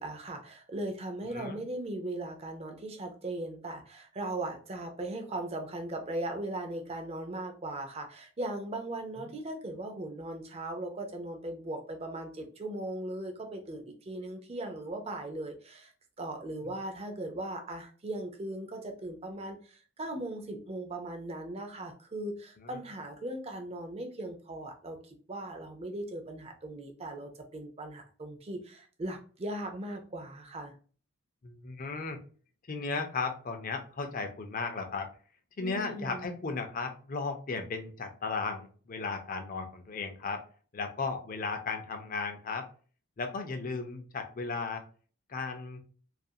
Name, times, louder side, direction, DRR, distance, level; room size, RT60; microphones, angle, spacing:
voice 1, 0.0-15.9 16.2-30.7 35.6-36.2, right 1 dB, 30° right, 4 dB, 0.4 m, -38 dB
voice 2, 31.4-32.2 32.7-35.1 35.6-40.4 40.7-42.7 43.2-44.8 45.3-45.8, left 4 dB, 40° left, 6 dB, 0.4 m, -35 dB
2.4 x 2.3 x 2.7 m, 0.40 s
head